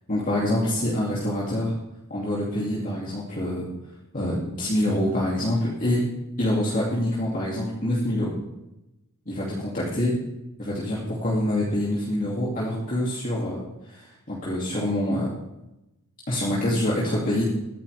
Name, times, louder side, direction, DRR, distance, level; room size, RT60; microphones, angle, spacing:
voice 1, 0.1-1.7 2.1-3.7 4.1-6.0 6.4-8.3 9.3-10.1 10.6-15.3 16.3-17.4, left 1 dB, 40° left, -6 dB, 2.5 m, -26 dB
22.5 x 10.5 x 3.4 m, 0.94 s
head